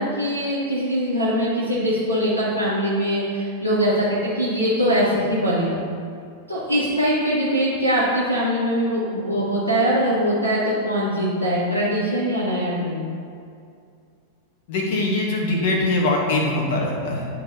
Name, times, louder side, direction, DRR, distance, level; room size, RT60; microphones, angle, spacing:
voice 1, 0.0-5.8 6.5-13.1, equal, 85° left, -10 dB, 1.7 m, -22 dB
voice 2, 14.7-17.2, left 2 dB, 50° left, -1 dB, 1.6 m, -22 dB
11.5 x 4.2 x 2.8 m, 2.4 s
figure-of-eight pair, 90°, 0 cm